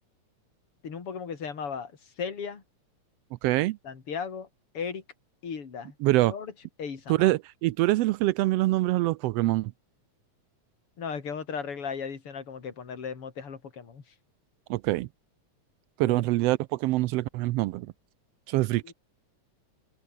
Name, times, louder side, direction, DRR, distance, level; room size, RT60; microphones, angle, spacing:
voice 1, 0.8-1.9 2.2-2.6 3.8-4.5 4.7-5.0 5.4-5.9 6.2-6.5 6.8-7.3 11.0-14.0 16.0-16.2 18.8-18.9, left 6 dB, 50° left, 4.0 m, -36 dB
voice 2, 3.4-3.8 6.0-6.3 7.1-9.7 14.7-15.1 16.0-17.9 18.5-18.8, right 18 dB, 85° right, 1.4 m, -25 dB
open air
omnidirectional pair, 3.4 m